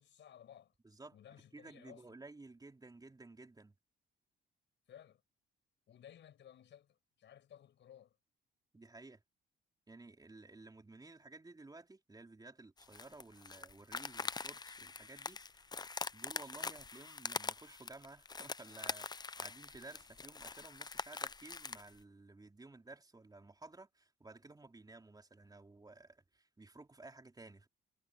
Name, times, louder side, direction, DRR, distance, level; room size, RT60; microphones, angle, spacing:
voice 1, 0.0-0.7 1.1-2.0 4.9-5.2 5.9-8.2, left 10 dB, 65° left, 5.6 m, -58 dB
voice 2, 0.8-1.2 1.5-3.7 8.7-9.2 9.9-15.7 16.1-27.7, right 3 dB, 20° right, 3.8 m, -55 dB
sound 1, 12.8-21.9, left 4 dB, 20° left, 0.5 m, -44 dB
cardioid pair, 90°, 20 cm